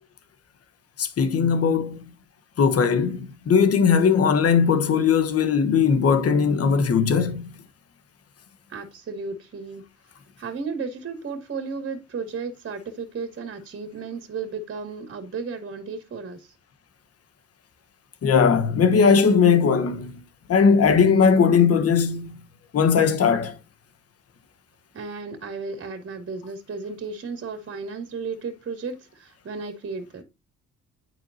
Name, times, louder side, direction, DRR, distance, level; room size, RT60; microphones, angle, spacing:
voice 1, 1.0-2.0 2.6-7.6 18.2-20.2 20.5-22.4 22.7-23.6, left 6 dB, 50° left, 1.2 m, -19 dB
voice 2, 8.7-9.9 10.4-16.5 24.9-30.2, right 4 dB, 40° right, 2.4 m, -34 dB
11.0 x 4.5 x 2.7 m
cardioid pair, 90°, 30 cm